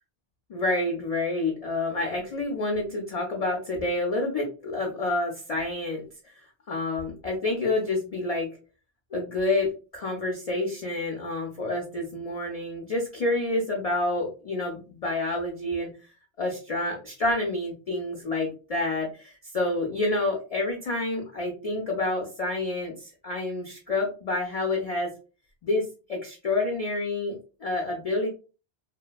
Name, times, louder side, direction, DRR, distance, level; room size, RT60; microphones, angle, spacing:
voice 1, 0.5-6.3 6.7-8.6 9.1-15.9 16.4-25.1 25.6-28.3, left 2 dB, 55° left, 0 dB, 0.4 m, -28 dB
2.8 x 2.1 x 2.2 m, 0.34 s
omnidirectional pair, 1.1 m